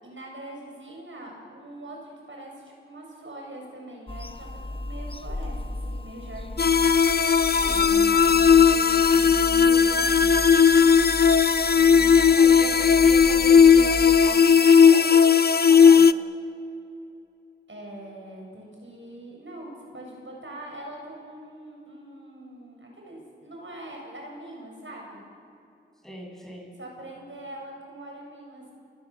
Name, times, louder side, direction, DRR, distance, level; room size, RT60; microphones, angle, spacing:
voice 1, 0.0-5.6 5.8-6.8 10.4-10.9 11.7-12.9 17.7-25.2 26.8-28.7, right 1 dB, 75° right, 0 dB, 7.3 m, -43 dB
Bird vocalization bird call bird song / Telephone, 4.1-14.3, left 1 dB, 25° left, 1.0 m, -36 dB
sound 1, 6.6-16.1, left 6 dB, 50° left, 0.6 m, -17 dB
voice 2, 7.6-10.3 11.8-16.1 26.0-26.7, equal, ahead, -2 dB, 7.5 m, -41 dB
29.0 x 21.5 x 7.5 m, 2.7 s
wide cardioid pair, 50°, 20 cm